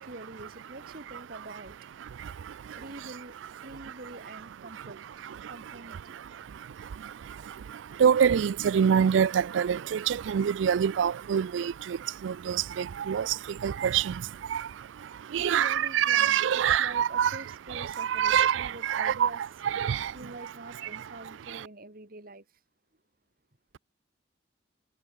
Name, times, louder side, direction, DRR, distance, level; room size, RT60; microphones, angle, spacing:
voice 1, 0.0-1.8 2.7-6.2 15.4-19.4 19.8-22.6, right 2 dB, 50° right, 2.9 m, -46 dB
voice 2, 8.0-12.0 12.2-13.3 13.6-14.1 14.5-14.6 15.3-17.3 17.8-19.3 19.6-20.1, right 8 dB, 80° right, 0.4 m, -25 dB
head